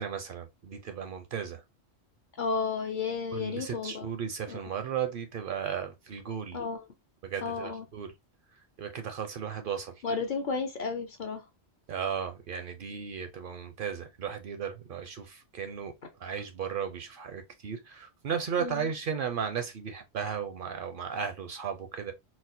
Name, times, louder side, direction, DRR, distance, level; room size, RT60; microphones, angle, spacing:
voice 1, 0.0-1.6 3.3-6.6 7.2-8.1 8.8-10.0 11.9-15.9 16.2-22.1, right 7 dB, 60° right, 0.6 m, -35 dB
voice 2, 2.4-4.1 4.5-4.6 6.5-6.8 7.4-7.9 10.0-11.4 18.6-18.9, left 5 dB, 55° left, 0.7 m, -32 dB
4.1 x 2.0 x 2.5 m
omnidirectional pair, 1.1 m